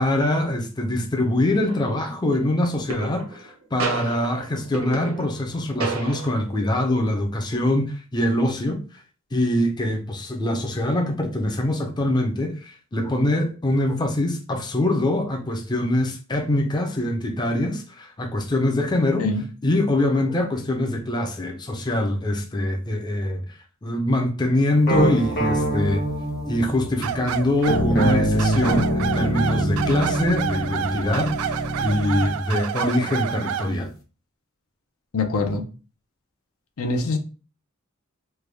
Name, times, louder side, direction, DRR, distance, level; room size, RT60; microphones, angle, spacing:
voice 1, 0.0-8.8 9.3-19.3 19.6-23.4 23.8-26.1 26.5-33.9, left 1 dB, 20° left, 0.5 m, -23 dB
sound 1, 1.6-2.0 2.9-3.5 3.8-5.5 5.8-6.6, right 3 dB, 65° right, 0.8 m, -31 dB
sound 2, 24.9-32.3, equal, 45° left, 0.9 m, -25 dB
sound 3, 27.0-33.7, right 9 dB, 85° right, 0.3 m, -29 dB
voice 2, 35.1-35.6 36.8-37.2, left 3 dB, 80° left, 0.6 m, -24 dB
3.3 x 2.2 x 3.3 m
head